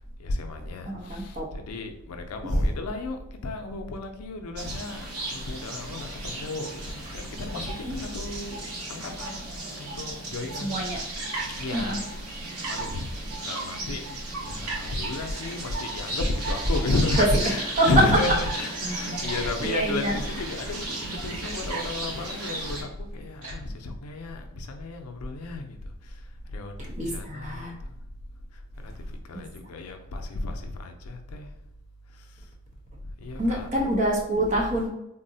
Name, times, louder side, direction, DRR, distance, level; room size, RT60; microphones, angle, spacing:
voice 1, 0.2-5.0 5.3-10.8 11.6-12.0 12.7-13.1 13.4-14.0 14.4-25.8 26.5-27.8 28.8-31.5 33.2-33.8, left 2 dB, 90° left, 5 dB, 0.4 m, -32 dB
voice 2, 0.9-1.5 2.5-2.6 7.8-8.0 10.6-11.0 11.7-12.0 17.2-17.3 17.8-17.9 19.1-20.2 27.0-27.7 33.4-34.9, right 1 dB, 35° right, -1 dB, 0.6 m, -26 dB
sound 1, 4.6-22.8, right 2 dB, 90° right, 0.8 m, -35 dB
Tick-tock, 15.4-15.6 16.4-16.6 17.4-17.6 18.4-18.5 19.4-19.6 20.4-20.6 21.4-21.6 22.4-22.6 23.4-23.6 23.8-23.9, right 2 dB, 60° right, 0.8 m, -42 dB
3.6 x 2.0 x 2.6 m, 0.83 s
head